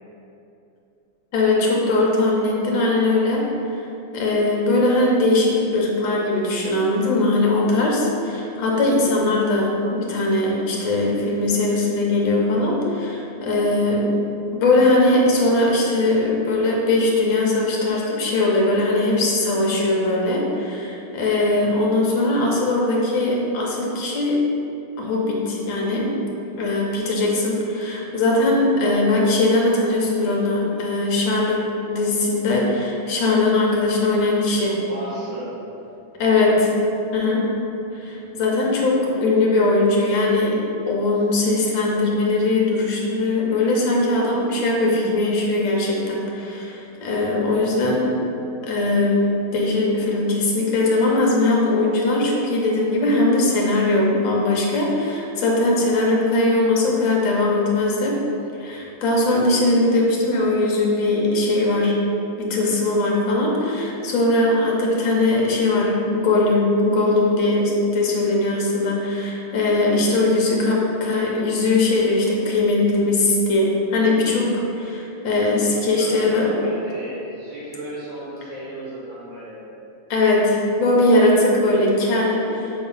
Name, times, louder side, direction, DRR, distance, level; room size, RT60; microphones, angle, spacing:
voice 1, 1.3-3.8 4.1-14.2 14.5-24.4 25.0-26.2 26.6-34.8 36.2-36.7 37.1-37.5 37.9-48.2 48.6-58.2 58.6-62.0 62.4-76.5 80.1-82.7, left 2 dB, 70° left, -2 dB, 1.7 m, -20 dB
voice 2, 34.9-35.5 36.3-36.6 75.9-79.6, right 1 dB, 70° right, -9 dB, 1.9 m, -34 dB
6.4 x 3.1 x 5.4 m, 2.8 s
omnidirectional pair, 2.3 m